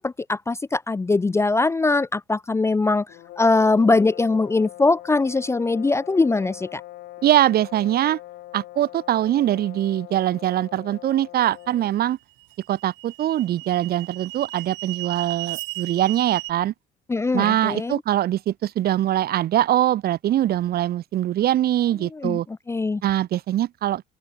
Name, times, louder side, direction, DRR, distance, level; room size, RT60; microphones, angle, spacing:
voice 1, 0.0-3.1 3.4-6.8 17.1-18.0 22.1-22.4 22.7-23.0, left 3 dB, 15° left, 0.6 m, -21 dB
sound 1, 3.1-12.0, left 15 dB, 65° left, 2.6 m, -42 dB
voice 2, 7.2-8.2 8.5-12.2 12.7-16.7 17.3-22.4 23.0-24.0, right 12 dB, 55° right, 1.5 m, -22 dB
sound 2, 11.5-11.6 12.4-16.5, right 19 dB, 75° right, 2.8 m, -35 dB
cardioid pair, 110°, 19 cm